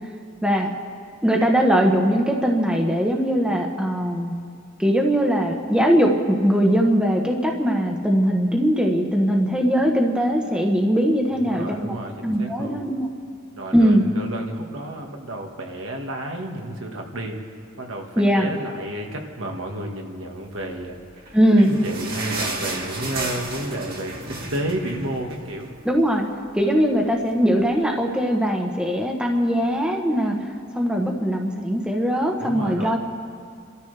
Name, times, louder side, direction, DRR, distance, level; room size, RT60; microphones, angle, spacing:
voice 1, 1.2-4.3 4.8-11.9 12.2-13.1 13.7-14.0 18.2-18.5 21.3-21.8 25.8-26.2 26.5-30.5 30.7-33.0, equal, 5° right, 1 dB, 1.1 m, -20 dB
voice 2, 11.3-12.8 13.5-17.4 17.8-21.3 21.7-25.7 32.4-33.0, right 1 dB, 80° right, 1 dB, 1.8 m, -31 dB
sound 1, 21.1-25.9 26.2-26.3 26.6-26.8 27.5-27.6, right 2 dB, 50° right, 2.2 m, -32 dB
29.5 x 13.5 x 3.4 m, 2.4 s
head